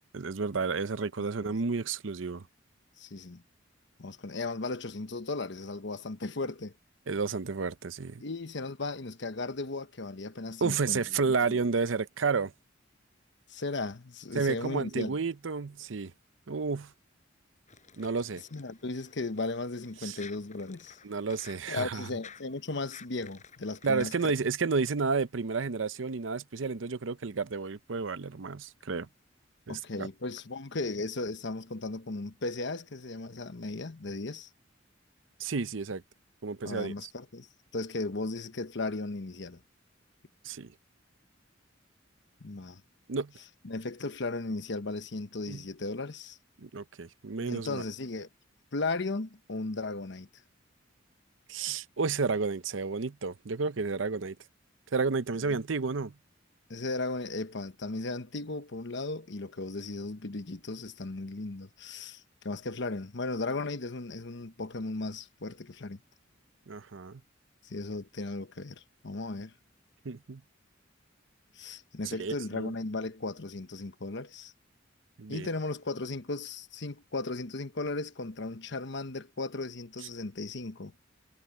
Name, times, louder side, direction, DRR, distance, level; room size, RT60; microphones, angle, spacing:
voice 1, 0.0-2.4 7.1-8.2 10.6-12.5 14.3-16.1 16.5-16.9 18.0-18.4 20.0-20.2 21.0-22.1 23.8-29.1 29.7-30.1 35.4-36.0 36.4-37.1 40.4-40.7 43.1-43.3 45.5-45.6 46.6-47.8 51.5-54.4 54.9-56.1 66.7-67.2 70.0-70.4 72.0-72.7 75.2-75.5, right 4 dB, 85° right, 0.7 m, -31 dB
voice 2, 3.0-3.4 4.0-6.7 8.2-11.0 11.5-11.6 13.5-15.1 18.5-21.0 21.7-24.1 29.7-34.5 36.6-37.5 37.7-39.6 42.4-42.8 43.6-46.4 47.4-48.3 48.7-50.3 55.5-55.6 56.7-66.0 67.6-69.5 71.5-74.5 75.3-80.9, left 3 dB, 65° left, 1.1 m, -36 dB
sound 1, 17.7-24.4, left 6 dB, 40° left, 7.2 m, -54 dB
head